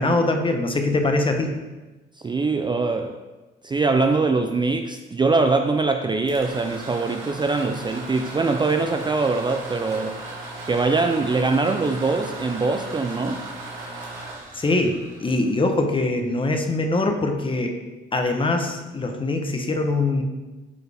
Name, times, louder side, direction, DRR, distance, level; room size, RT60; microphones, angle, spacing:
voice 1, 0.0-1.5 14.5-17.7 18.1-20.2, left 2 dB, 25° left, 5 dB, 0.9 m, -23 dB
voice 2, 2.2-3.2 3.6-10.2 10.7-13.4, right 3 dB, 25° right, 6 dB, 0.4 m, -22 dB
sound 1, 6.1-15.9, right 2 dB, 85° right, 1.9 m, -37 dB
8.3 x 4.6 x 3.4 m, 1.2 s
cardioid pair, 90°, 20 cm